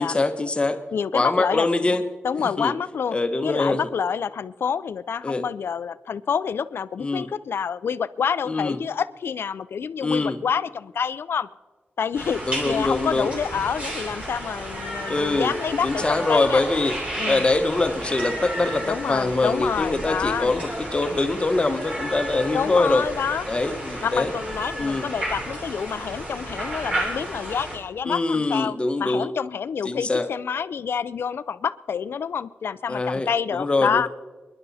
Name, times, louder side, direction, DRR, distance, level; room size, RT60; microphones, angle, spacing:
voice 1, 0.0-0.8 1.1-2.0 2.6-2.7 3.1-3.8 5.2-5.4 7.0-7.3 8.5-8.8 10.0-10.4 12.5-13.3 15.1-15.5 15.8-16.9 17.3-23.0 23.5-24.3 24.8-25.1 28.0-29.3 29.8-30.3 32.9-34.1, left 2 dB, 25° left, 8 dB, 1.0 m, -23 dB
voice 2, 0.9-1.7 2.2-3.2 3.4-11.5 12.0-16.6 17.2-17.5 18.8-20.5 22.5-23.5 24.0-34.1, left 7 dB, 80° left, 16 dB, 0.5 m, -27 dB
sound 1, 12.1-27.8, right 1 dB, 30° right, 3.9 m, -32 dB
29.0 x 11.0 x 4.2 m, 1.3 s
wide cardioid pair, 150°, 4 cm